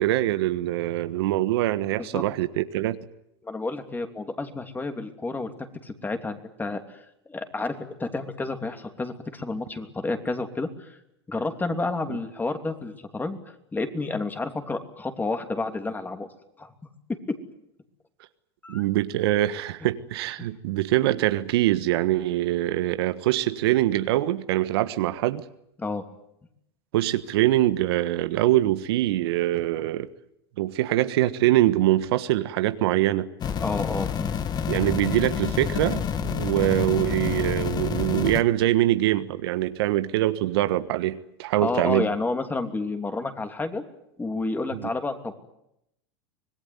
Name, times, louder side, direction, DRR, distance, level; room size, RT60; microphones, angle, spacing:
voice 1, 0.0-3.0 12.1-12.2 18.7-25.4 26.9-30.1 30.6-33.3 34.7-42.1 44.8-44.9, right 15 dB, 65° right, 11 dB, 1.4 m, -24 dB
voice 2, 3.4-11.0 11.3-16.3 16.6-16.7 18.6-18.8 20.4-20.5 25.8-26.0 33.6-34.4 41.6-43.8 44.2-45.3, left 3 dB, 15° left, 7 dB, 3.0 m, -30 dB
sound 1, 33.4-38.4, left 7 dB, 30° left, 1.8 m, -28 dB
25.5 x 19.5 x 9.7 m, 0.80 s
hypercardioid pair, 105°, 14 cm